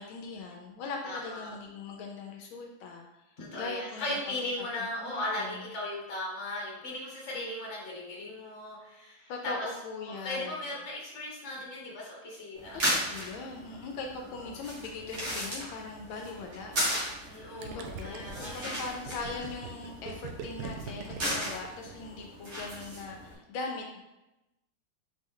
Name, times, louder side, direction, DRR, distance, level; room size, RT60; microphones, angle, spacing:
voice 1, 0.0-4.2 4.6-5.7 9.3-10.7 12.7-24.0, left 4 dB, 80° left, 2 dB, 1.3 m, -40 dB
voice 2, 1.0-1.5 3.4-9.5 10.2-12.9 13.2-13.4 17.3-18.8, left 1 dB, 40° left, -3 dB, 1.4 m, -37 dB
sound 1, 12.6-23.3, equal, 40° right, 1.5 m, -36 dB
Gurgling, 17.6-22.3, right 5 dB, 85° right, 0.8 m, -42 dB
4.4 x 3.1 x 3.7 m, 0.96 s
omnidirectional pair, 2.2 m